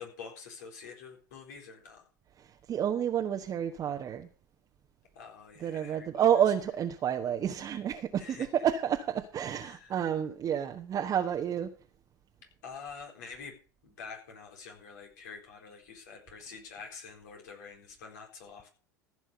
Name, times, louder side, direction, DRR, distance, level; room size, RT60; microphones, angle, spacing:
voice 1, 0.0-2.1 5.1-6.2 8.2-8.5 9.6-10.0 12.6-13.5 13.8-18.7, left 5 dB, 70° left, 4.2 m, -47 dB
voice 2, 2.4-4.3 5.6-11.7, right 9 dB, 35° right, 1.2 m, -30 dB
15.0 x 6.1 x 6.7 m
figure-of-eight pair, 75°, 10 cm